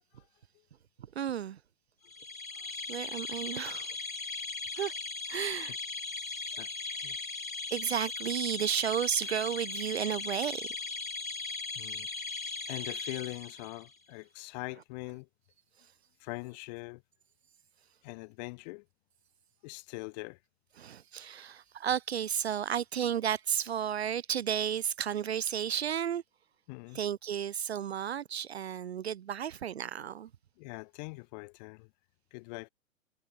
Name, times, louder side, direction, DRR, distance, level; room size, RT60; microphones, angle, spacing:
voice 1, 1.1-1.6 2.9-3.9 4.8-4.9 5.3-5.7 7.7-10.7 20.8-26.2 26.9-30.3, right 9 dB, 50° right, 1.0 m, -33 dB
sound 1, 2.1-13.9, left 3 dB, 80° left, 2.1 m, -38 dB
voice 2, 6.2-6.7 7.0-7.2 11.7-12.1 12.7-15.3 16.2-17.0 18.0-18.8 19.6-20.4 26.7-27.0 30.6-31.9 32.3-32.7, left 28 dB, 30° left, 3.2 m, -42 dB
figure-of-eight pair, 115°, 40 cm